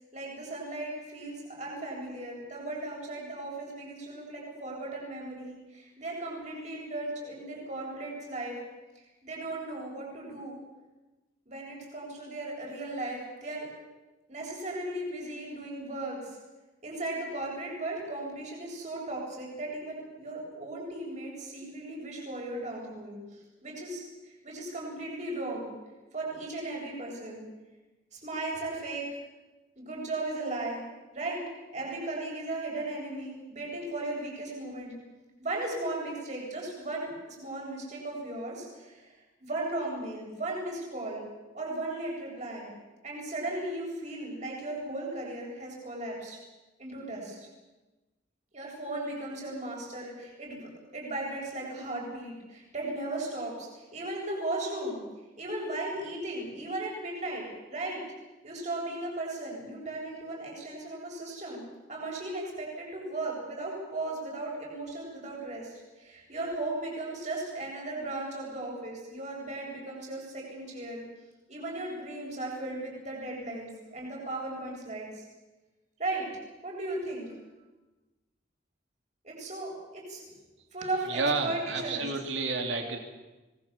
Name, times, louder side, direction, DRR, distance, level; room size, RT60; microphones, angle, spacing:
voice 1, 0.1-8.6 8.9-10.6 11.5-13.7 14.3-16.4 16.8-25.7 26.1-27.4 28.1-29.2 29.8-30.8 31.1-31.4 31.7-34.9 35.4-39.2 39.4-41.2 41.5-42.7 43.0-46.4 46.8-47.5 48.5-55.0 55.4-58.0 58.4-61.6 61.9-71.0 71.5-75.2 76.0-76.3 76.6-77.3 79.2-80.2 80.7-82.1, right 2 dB, 40° right, -2 dB, 7.7 m, -36 dB
voice 2, 81.1-83.0, right 3 dB, 80° right, 4 dB, 3.0 m, -30 dB
25.5 x 20.0 x 7.3 m, 1.1 s
head